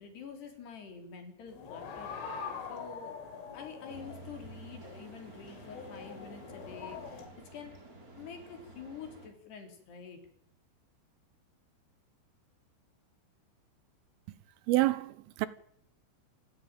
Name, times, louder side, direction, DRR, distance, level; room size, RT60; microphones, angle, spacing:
voice 1, 0.0-2.1 2.7-3.2 3.5-7.2 7.5-7.8 8.1-10.2, left 6 dB, 60° left, 5.7 m, -47 dB
sound 1, 1.5-7.3, left 6 dB, 80° left, 5.4 m, -44 dB
sound 2, 3.9-9.3, right 2 dB, 20° right, 3.9 m, -51 dB
voice 2, 14.7-15.5, right 17 dB, 85° right, 3.7 m, -27 dB
27.0 x 15.5 x 9.1 m
omnidirectional pair, 5.7 m